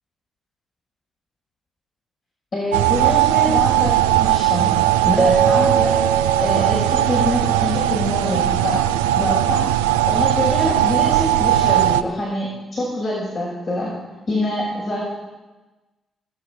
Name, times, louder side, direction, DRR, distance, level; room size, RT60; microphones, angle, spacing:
voice 1, 2.5-4.7 5.0-6.0 6.4-8.8 9.2-13.9 14.3-15.1, left 1 dB, 50° left, -6 dB, 6.0 m, -25 dB
sound 1, 2.7-12.0, right 14 dB, 80° right, 0.4 m, -18 dB
Keyboard (musical), 5.2-7.6, right 6 dB, 25° right, 0.9 m, -22 dB
18.5 x 9.3 x 5.9 m, 1.1 s
hypercardioid pair, 40°, 0 cm